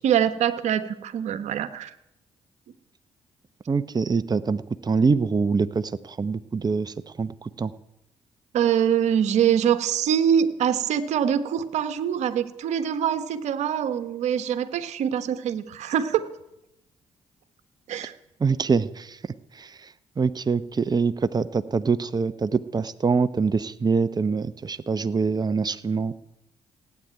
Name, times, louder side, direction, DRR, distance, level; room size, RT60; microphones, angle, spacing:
voice 1, 0.0-1.9 8.5-16.3 17.9-18.1, right 9 dB, 70° right, 11 dB, 1.4 m, -24 dB
voice 2, 3.7-7.7 18.4-26.2, right 5 dB, 35° right, 12 dB, 1.0 m, -25 dB
17.0 x 9.5 x 9.0 m, 0.84 s
supercardioid pair, 50°, 12 cm